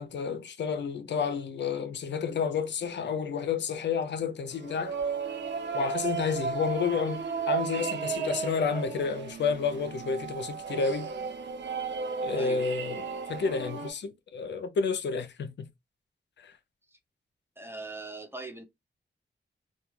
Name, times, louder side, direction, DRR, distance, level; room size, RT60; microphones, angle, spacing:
voice 1, 0.0-5.0 5.7-11.1 12.2-15.7 16.4-16.5, left 6 dB, 75° left, 0.4 m, -30 dB
sound 1, 4.5-13.9, right 6 dB, 75° right, 0.6 m, -34 dB
voice 2, 17.6-18.7, right 2 dB, 10° right, 0.5 m, -40 dB
2.2 x 2.2 x 3.0 m
wide cardioid pair, 100°, 19 cm